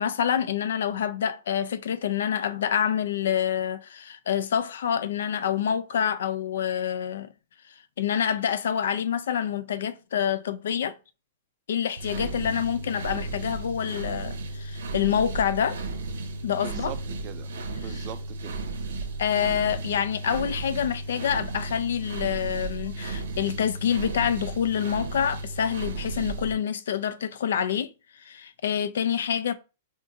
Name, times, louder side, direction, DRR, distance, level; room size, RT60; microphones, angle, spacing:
voice 1, 0.0-7.3 8.0-11.0 11.7-15.8 16.4-16.9 19.2-27.9 28.2-29.5, left 8 dB, 70° left, 0.4 m, -27 dB
sound 1, 12.0-26.5, right 3 dB, 85° right, 0.7 m, -34 dB
voice 2, 16.5-18.7, right 11 dB, 30° right, 0.3 m, -42 dB
2.5 x 2.5 x 3.8 m
supercardioid pair, 170°, 0 cm